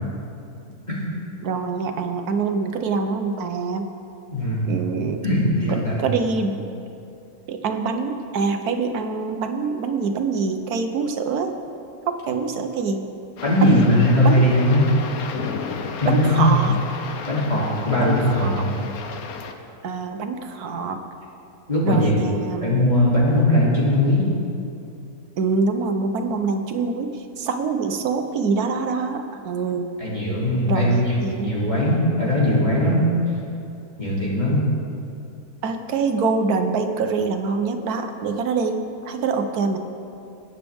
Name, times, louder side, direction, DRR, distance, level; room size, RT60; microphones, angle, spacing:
voice 1, 1.4-3.9 4.7-5.2 5.7-6.7 7.5-11.5 12.1-13.1 13.6-13.8 14.2-14.5 16.1-16.7 18.0-18.6 19.8-21.0 21.8-22.9 25.4-29.9 30.6-31.5 35.6-38.8 39.0-39.8, right 4 dB, 85° right, 6 dB, 1.4 m, -25 dB
voice 2, 4.3-4.7 5.2-6.0 13.4-14.8 16.0-16.6 17.3-18.6 21.7-22.1 22.6-24.2 30.0-33.1 34.0-34.6, left 1 dB, 30° left, -8 dB, 2.8 m, -19 dB
sound 1, 13.4-19.5, left 5 dB, 75° left, 1.3 m, -33 dB
21.0 x 9.2 x 3.5 m, 2.6 s
omnidirectional pair, 1.6 m